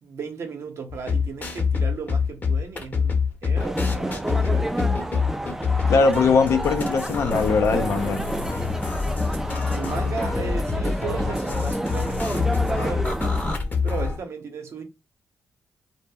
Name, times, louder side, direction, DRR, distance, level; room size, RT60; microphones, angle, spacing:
voice 1, 0.0-5.1 9.7-13.4 13.8-14.8, right 5 dB, 60° right, 0.7 m, -35 dB
sound 1, 0.9-14.2, left 5 dB, 35° left, 0.8 m, -26 dB
sound 2, 3.6-13.6, right 1 dB, 10° right, 0.3 m, -30 dB
voice 2, 5.9-8.2, left 4 dB, 70° left, 0.5 m, -20 dB
2.1 x 2.0 x 3.5 m
supercardioid pair, 60°, 5 cm